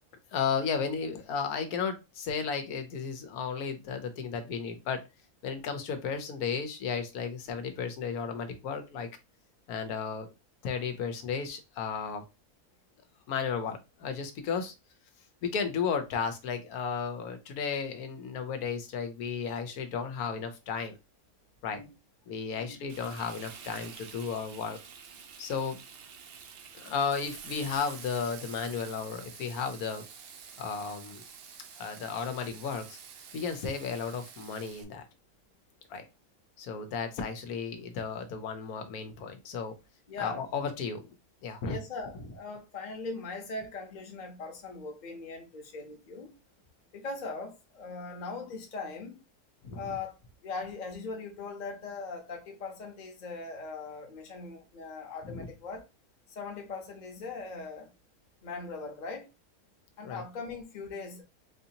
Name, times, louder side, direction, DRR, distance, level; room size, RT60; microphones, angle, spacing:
voice 1, 0.3-5.0 5.4-9.1 9.7-10.3 10.6-12.2 13.3-14.7 15.4-21.0 21.6-21.8 22.3-24.8 25.4-25.8 26.7-30.0 30.6-31.2 31.7-33.0 33.3-35.1 35.9-36.0 36.6-39.7 40.2-41.0 41.4-41.8 42.1-42.4 49.6-50.0 55.2-55.5 60.0-60.2, left 6 dB, 85° left, 1.2 m, -34 dB
Frying (food), 22.9-34.8, right 7 dB, 65° right, 0.6 m, -48 dB
voice 2, 40.1-40.4 41.6-46.3 46.9-49.2 49.7-55.9 56.3-57.9 58.4-59.3 60.0-61.2, left 4 dB, 35° left, 0.8 m, -40 dB
4.0 x 2.6 x 2.8 m
omnidirectional pair, 1.5 m